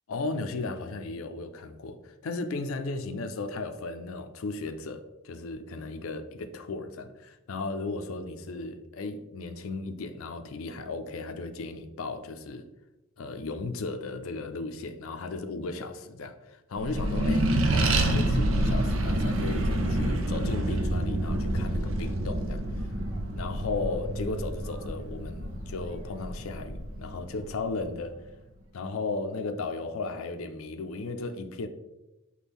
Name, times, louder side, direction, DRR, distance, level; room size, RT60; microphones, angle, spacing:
voice 1, 0.1-12.6 13.2-22.6 23.3-28.2 28.7-31.7, left 3 dB, 75° left, 0.4 m, -35 dB
Accelerating revving vroom, 16.7-27.7, right 1 dB, 70° right, 0.5 m, -28 dB
6.0 x 2.2 x 3.5 m
head